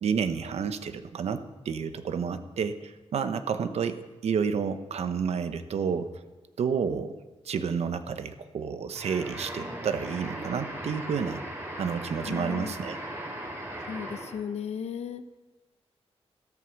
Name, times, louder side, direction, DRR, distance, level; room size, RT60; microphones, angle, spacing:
voice 1, 0.0-4.0 4.2-6.1 6.6-7.2 7.4-11.4 11.8-13.0, right 6 dB, 80° right, 10 dB, 1.0 m, -30 dB
sound 1, 8.9-14.5, right 1 dB, 20° right, 3.7 m, -38 dB
voice 2, 12.2-12.7 13.9-15.2, left 7 dB, 90° left, 11 dB, 0.8 m, -35 dB
13.5 x 13.0 x 5.9 m, 1.2 s
wide cardioid pair, 160°, 11 cm